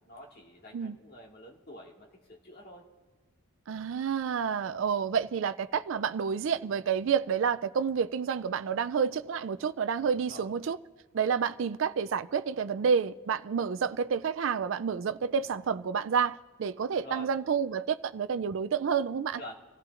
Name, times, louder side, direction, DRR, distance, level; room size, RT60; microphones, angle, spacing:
voice 1, 0.0-2.9 4.5-4.8 10.2-10.5 16.9-17.3 19.4-19.5, left 1 dB, 45° left, 2.0 m, -47 dB
voice 2, 3.7-10.8 11.1-19.4, right 6 dB, 60° right, 0.4 m, -29 dB
26.5 x 15.0 x 2.5 m
head